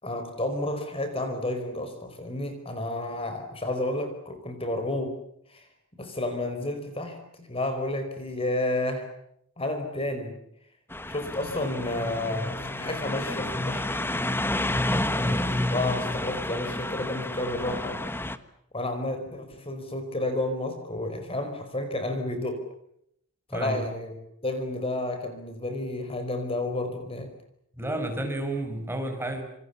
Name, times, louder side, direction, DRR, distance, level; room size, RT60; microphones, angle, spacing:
voice 1, 0.0-5.2 5.5-5.7 6.0-9.1 9.6-10.4 11.1-14.1 15.1-18.0 18.7-22.7 23.5-24.2 24.4-27.3, left 1 dB, 25° left, 8 dB, 4.9 m, -31 dB
sound 1, 10.9-18.4, left 1 dB, 10° left, 1.4 m, -30 dB
voice 2, 27.8-29.4, right 1 dB, 10° right, 5 dB, 5.6 m, -31 dB
28.5 x 27.5 x 7.1 m, 0.74 s
head